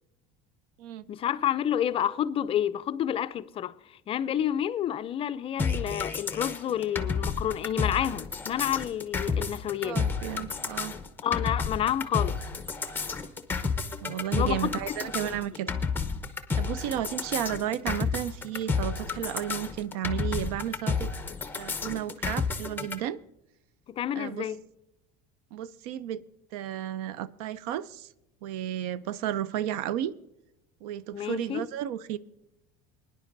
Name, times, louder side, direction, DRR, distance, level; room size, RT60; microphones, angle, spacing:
voice 1, 1.1-10.0 11.2-12.4 14.3-14.7 15.0-15.1 23.9-24.6 31.1-31.6, left 10 dB, 30° left, 0.4 m, -29 dB
sound 1, 5.6-23.0, left 5 dB, 10° left, 0.8 m, -31 dB
voice 2, 9.8-11.0 14.0-15.7 16.6-21.1 21.6-23.2 24.2-24.5 25.5-26.2 26.5-28.1 28.4-30.1 30.8-32.2, right 11 dB, 85° right, 0.5 m, -33 dB
22.0 x 10.5 x 2.6 m
cardioid pair, 140°, 19 cm